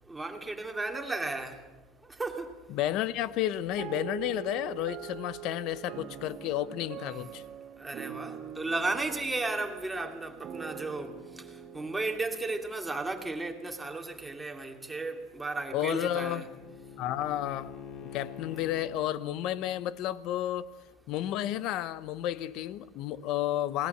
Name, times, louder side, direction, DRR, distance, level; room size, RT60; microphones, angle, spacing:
voice 1, 0.1-1.6 2.2-2.5 7.8-11.1 11.7-16.5, right 3 dB, 5° right, 2.5 m, -34 dB
voice 2, 2.7-7.4 15.7-16.4 17.0-17.7 18.1-20.7 21.1-23.9, left 12 dB, 55° left, 1.0 m, -31 dB
sound 1, 3.8-13.5, right 10 dB, 40° right, 1.7 m, -44 dB
Bowed string instrument, 15.2-19.1, left 7 dB, 35° left, 2.2 m, -47 dB
28.0 x 19.5 x 8.0 m
cardioid pair, 155°, 0 cm